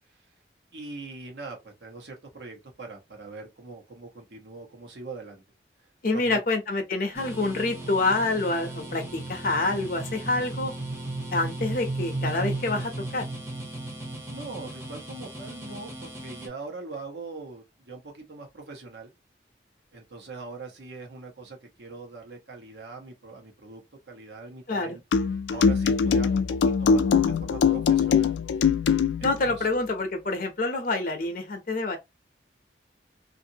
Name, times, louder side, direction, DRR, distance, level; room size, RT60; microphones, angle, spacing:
voice 1, 0.7-5.4 6.1-6.4 14.2-19.1 19.9-25.0 25.5-28.4 29.2-29.7, right 3 dB, 75° right, 1.0 m, -42 dB
voice 2, 6.0-10.7 11.3-13.2 24.7-25.0 29.2-32.0, left 2 dB, 50° left, 0.6 m, -27 dB
sound 1, 7.1-16.5, right 2 dB, 15° right, 0.7 m, -35 dB
sound 2, 25.1-29.4, left 6 dB, 90° left, 0.3 m, -22 dB
2.6 x 2.5 x 2.7 m
head